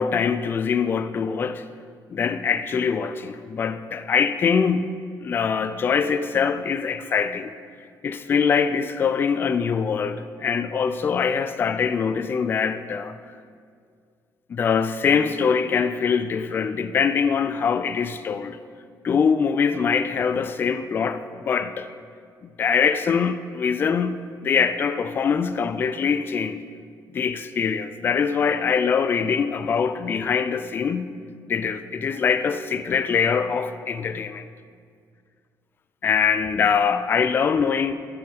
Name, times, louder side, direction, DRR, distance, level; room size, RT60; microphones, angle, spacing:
voice 1, 0.0-1.6 2.1-4.9 5.2-7.5 8.0-13.2 14.5-18.6 19.0-21.9 22.4-26.6 27.1-31.2 31.5-34.5 36.0-37.9, left 6 dB, 30° left, 0.3 m, -23 dB
12.5 x 9.3 x 3.5 m
cardioid pair, 170°, 7 cm